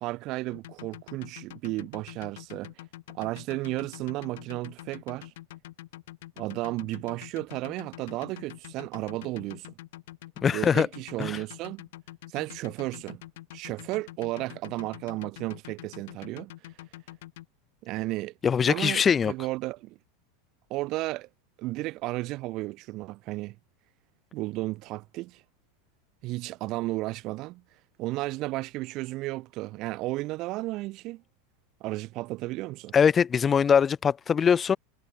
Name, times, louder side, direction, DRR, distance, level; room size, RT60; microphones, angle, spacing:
voice 1, 0.0-2.7 3.1-5.3 6.4-9.7 10.5-11.8 12.3-13.2 13.5-16.5 17.8-18.3 18.7-20.0 20.7-21.3 21.6-23.6 24.3-25.4 26.2-27.6 28.0-31.2 31.8-33.0, right 19 dB, 50° right, 1.7 m, -33 dB
sound 1, 0.5-17.5, left 16 dB, 70° left, 2.6 m, -45 dB
voice 2, 10.4-10.9 11.2-11.4 18.4-19.3 32.9-34.8, left 7 dB, 25° left, 0.5 m, -22 dB
hypercardioid pair, 105°, 0 cm